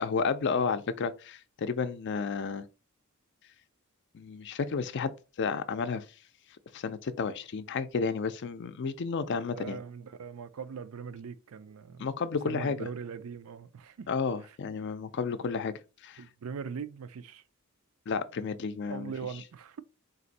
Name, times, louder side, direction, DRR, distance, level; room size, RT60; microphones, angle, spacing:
voice 1, 0.0-2.6 4.1-6.0 6.7-9.8 12.0-12.8 14.1-15.7 16.0-16.2 18.1-19.1, left 5 dB, 55° left, 0.4 m, -32 dB
voice 2, 9.6-12.1 12.5-14.1 14.4-14.6 16.2-17.4 18.9-19.8, right 6 dB, 70° right, 0.4 m, -41 dB
4.0 x 2.5 x 4.0 m
head